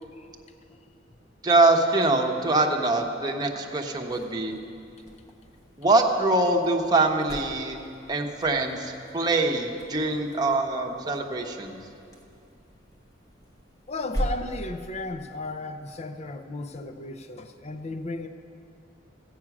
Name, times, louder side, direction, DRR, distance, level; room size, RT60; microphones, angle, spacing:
voice 1, 1.4-4.5 5.8-7.8 8.1-11.8, right 2 dB, 20° right, 1 dB, 1.0 m, -24 dB
sound 1, 4.0-15.2, equal, 20° left, 1.2 m, -41 dB
voice 2, 13.9-18.3, left 2 dB, 35° left, 7 dB, 0.5 m, -35 dB
15.0 x 8.7 x 6.0 m, 2.6 s
head